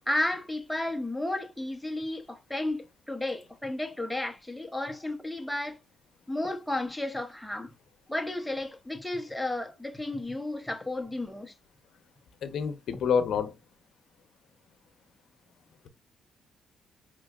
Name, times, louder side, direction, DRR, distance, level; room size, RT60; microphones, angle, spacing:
voice 1, 0.1-5.8 6.3-7.7 8.1-11.5, left 1 dB, 5° left, 0.9 m, -33 dB
voice 2, 12.4-13.6, left 6 dB, 65° left, 0.8 m, -27 dB
5.8 x 3.7 x 2.4 m
cardioid pair, 90°, 0 cm